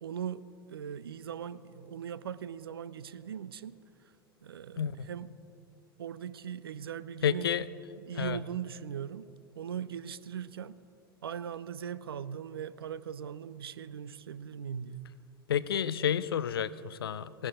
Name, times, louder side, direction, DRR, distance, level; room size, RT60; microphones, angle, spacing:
voice 1, 0.0-4.1 4.4-5.3 6.0-7.5 8.0-9.3 9.6-10.8 11.2-15.1, right 8 dB, 80° right, 16 dB, 0.4 m, -40 dB
voice 2, 7.2-7.6 8.2-8.4 15.5-17.5, left 9 dB, 80° left, 17 dB, 0.4 m, -30 dB
17.5 x 9.9 x 4.3 m, 2.9 s
figure-of-eight pair, 85°, 12 cm